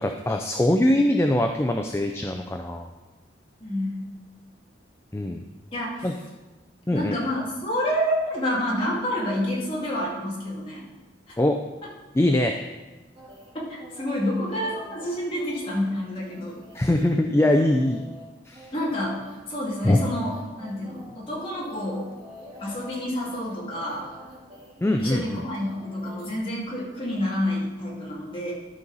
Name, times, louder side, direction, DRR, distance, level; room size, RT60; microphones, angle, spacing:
voice 1, 0.0-2.9 5.1-5.4 6.0-6.1 6.9-7.2 11.4-11.6 12.1-12.6 16.7-18.0 18.5-18.7 19.8-20.0 24.8-25.4, left 1 dB, 15° left, 4 dB, 0.4 m, -22 dB
voice 2, 3.6-4.2 5.7-6.1 6.9-10.8 11.3-11.4 13.5-16.6 18.7-19.2 19.5-22.1 22.6-24.1 25.0-28.5, left 1 dB, 30° left, -5 dB, 2.3 m, -28 dB
Vocal Chops Female with Harmony, 13.1-26.3, left 1 dB, 35° right, 1.8 m, -46 dB
12.5 x 5.4 x 4.0 m, 1.1 s
head